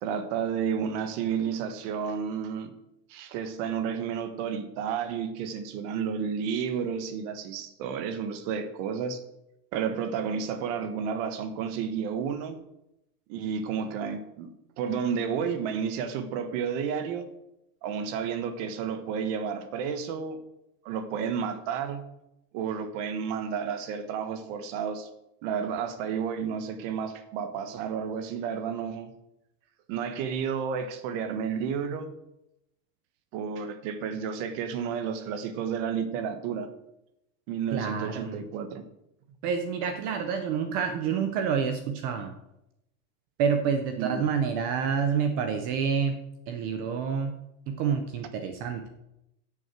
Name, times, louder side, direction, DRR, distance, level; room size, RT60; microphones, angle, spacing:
voice 1, 0.0-2.7 3.1-9.2 9.7-12.6 13.3-14.5 14.8-17.3 17.8-20.4 20.8-22.1 22.5-25.1 25.4-29.1 29.9-32.1 33.3-36.7 37.5-38.8 44.0-44.2, right 7 dB, 50° right, 9 dB, 1.4 m, -31 dB
voice 2, 37.7-38.4 39.4-42.3 43.4-46.2 46.5-47.3 47.7-48.9, right 6 dB, 25° right, 7 dB, 0.3 m, -28 dB
10.5 x 6.5 x 7.7 m, 0.86 s
supercardioid pair, 160°, 46 cm